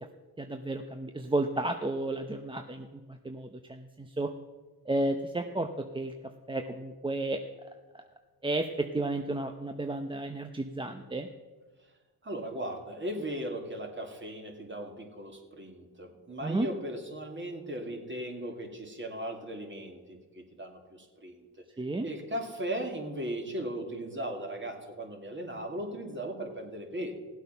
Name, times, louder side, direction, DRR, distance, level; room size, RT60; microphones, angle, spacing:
voice 1, 0.4-4.3 4.9-6.1 6.5-7.4 7.9-8.0 8.4-11.3 16.4-16.7 21.8-22.1, right 2 dB, 15° right, 5 dB, 0.7 m, -32 dB
voice 2, 12.2-21.5 22.0-27.1, right 1 dB, 30° right, 2 dB, 2.4 m, -37 dB
16.0 x 8.1 x 5.7 m, 1.3 s
cardioid pair, 70°, 39 cm